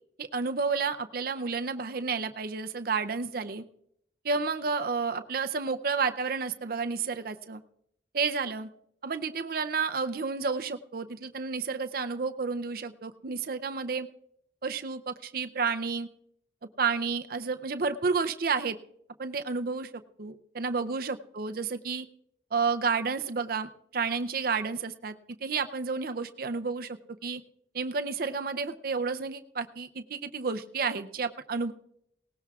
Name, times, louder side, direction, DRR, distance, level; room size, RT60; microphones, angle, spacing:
voice 1, 0.2-3.6 4.2-7.6 8.1-8.7 9.0-14.1 14.6-16.1 16.8-18.8 19.2-22.1 22.5-25.1 25.4-27.4 27.7-31.7, right 5 dB, 50° right, 9 dB, 0.5 m, -31 dB
19.5 x 18.0 x 2.4 m, 0.73 s
head